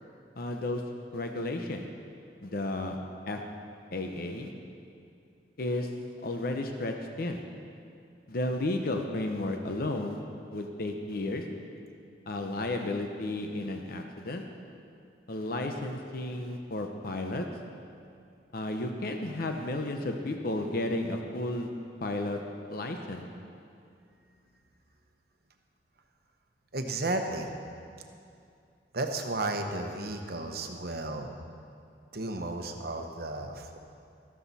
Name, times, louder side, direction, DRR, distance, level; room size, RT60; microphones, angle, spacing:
voice 1, 0.4-0.8 1.1-1.8 2.4-3.0 3.3-3.4 3.9-4.5 5.6-5.9 6.2-7.4 8.3-10.2 10.5-11.4 12.3-14.5 15.3-17.5 18.5-21.7 22.0-22.4 22.7-23.2, left 2 dB, 55° left, 4 dB, 0.8 m, -33 dB
voice 2, 26.7-27.6 28.9-31.3 32.1-33.8, right 2 dB, 60° right, 5 dB, 1.0 m, -33 dB
13.5 x 13.0 x 4.2 m, 2.5 s
head